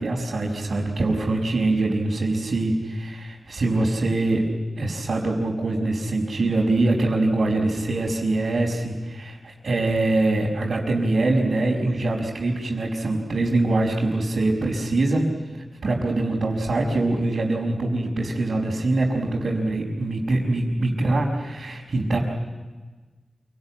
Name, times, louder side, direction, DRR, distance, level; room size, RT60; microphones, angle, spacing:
voice 1, 0.0-4.4 4.8-15.3 15.8-22.2, right 2 dB, 70° right, -5 dB, 5.0 m, -23 dB
27.5 x 19.0 x 9.9 m, 1.3 s
wide cardioid pair, 75°, 0 cm